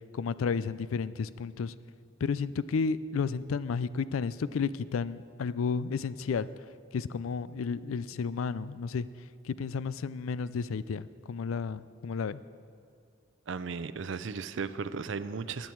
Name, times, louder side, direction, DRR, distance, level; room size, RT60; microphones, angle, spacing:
voice 1, 0.1-1.7 2.2-6.5 6.9-9.1 9.4-12.4, left 5 dB, 90° left, 16 dB, 0.4 m, -32 dB
voice 2, 13.5-15.7, right 5 dB, 65° right, 13 dB, 0.5 m, -35 dB
15.5 x 10.5 x 4.6 m, 2.2 s
head